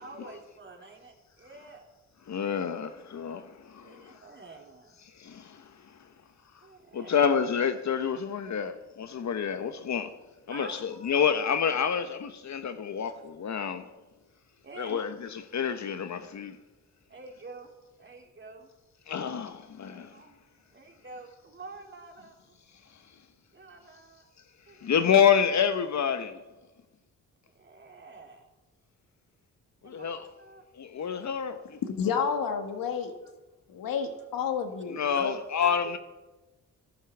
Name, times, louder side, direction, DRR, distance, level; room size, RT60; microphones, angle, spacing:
voice 1, 0.0-1.9 2.3-2.5 3.8-5.0 6.6-7.2 10.5-11.3 13.1-13.2 14.6-15.0 17.1-17.7 18.0-18.7 19.9-20.4 20.7-22.5 23.5-24.3 24.7-25.1 27.5-28.5 29.8-30.6 35.0-35.7, right 3 dB, 35° right, 3.2 m, -48 dB
voice 2, 2.3-4.2 5.2-5.7 6.9-10.1 10.5-13.9 14.8-16.6 19.1-20.2 24.8-26.4 29.8-30.3 30.8-31.8 34.9-36.0, left 7 dB, 55° left, 1.1 m, -28 dB
voice 3, 31.9-33.1 33.7-35.3, left 6 dB, 80° left, 1.8 m, -30 dB
12.0 x 12.0 x 7.2 m
cardioid pair, 75°, 34 cm